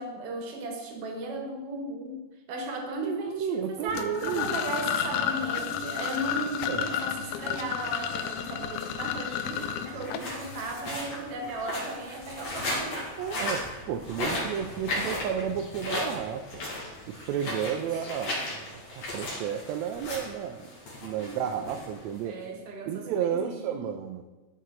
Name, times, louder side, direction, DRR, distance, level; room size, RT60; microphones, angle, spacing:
voice 1, 0.0-13.1 17.4-18.1 21.2-21.6 22.2-23.9, right 2 dB, 60° right, 2 dB, 2.1 m, -36 dB
voice 2, 3.0-4.6 6.7-6.9 13.2-16.6 17.1-20.7 21.0-22.4 22.9-24.2, right 8 dB, 80° right, 6 dB, 1.7 m, -32 dB
sound 1, 3.9-10.7, left 9 dB, 90° left, 2.0 m, -32 dB
sound 2, 6.7-22.4, left 1 dB, 60° left, 3.3 m, -37 dB
12.5 x 5.5 x 4.0 m, 1.2 s
omnidirectional pair, 3.4 m